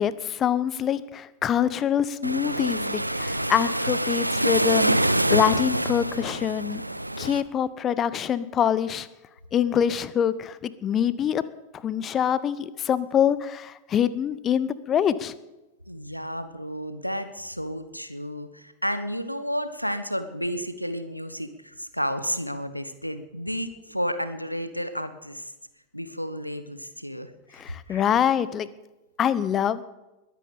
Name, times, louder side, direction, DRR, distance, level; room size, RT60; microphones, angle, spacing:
voice 1, 0.0-6.8 7.2-9.1 9.5-11.4 11.7-15.3 27.5-28.7 29.2-29.8, left 9 dB, 25° left, 17 dB, 0.9 m, -25 dB
Waves surf, 2.2-7.4, right 1 dB, 85° right, 0.7 m, -25 dB
voice 2, 15.9-25.5 25.9-28.1, equal, 90° left, 11 dB, 1.3 m, -32 dB
21.5 x 9.5 x 7.1 m, 1.0 s
figure-of-eight pair, 90°, 0 cm